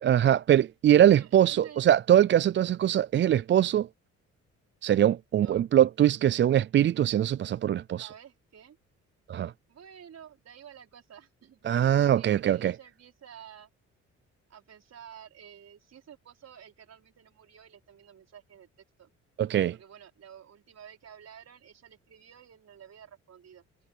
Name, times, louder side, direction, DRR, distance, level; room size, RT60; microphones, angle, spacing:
voice 1, 0.0-3.9 4.8-8.1 9.3-9.5 11.7-12.7 19.4-19.8, right 11 dB, 40° right, 0.4 m, -22 dB
voice 2, 1.0-1.8 5.3-5.6 8.0-8.8 9.7-13.7 14.5-19.1 19.7-23.6, right 9 dB, 55° right, 5.2 m, -51 dB
cardioid pair, 90°, 30 cm